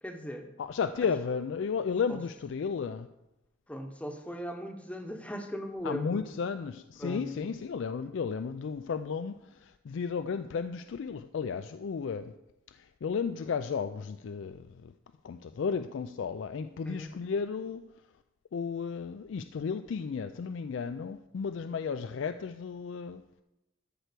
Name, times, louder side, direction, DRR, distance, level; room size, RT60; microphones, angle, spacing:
voice 1, 0.0-0.5 2.1-2.2 3.7-6.3 7.0-7.5 16.9-17.1, equal, 5° left, 5 dB, 0.9 m, -38 dB
voice 2, 0.6-3.1 5.8-12.3 12.7-14.9 15.2-17.8 18.5-23.2, left 6 dB, 70° left, 10 dB, 0.3 m, -33 dB
12.5 x 4.5 x 6.7 m, 0.95 s
head